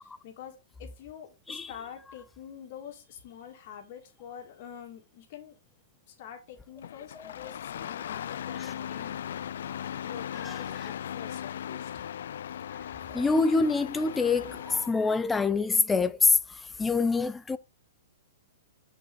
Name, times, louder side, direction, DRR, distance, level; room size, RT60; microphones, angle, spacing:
voice 1, 0.0-5.6 6.1-9.2 10.0-11.9, left 9 dB, 45° left, 2.6 m, -46 dB
Engine starting, 6.8-14.9, left 9 dB, 70° left, 0.4 m, -38 dB
voice 2, 13.1-17.6, left 4 dB, 10° left, 0.5 m, -26 dB
9.9 x 5.4 x 4.1 m
hypercardioid pair, 150°, 0 cm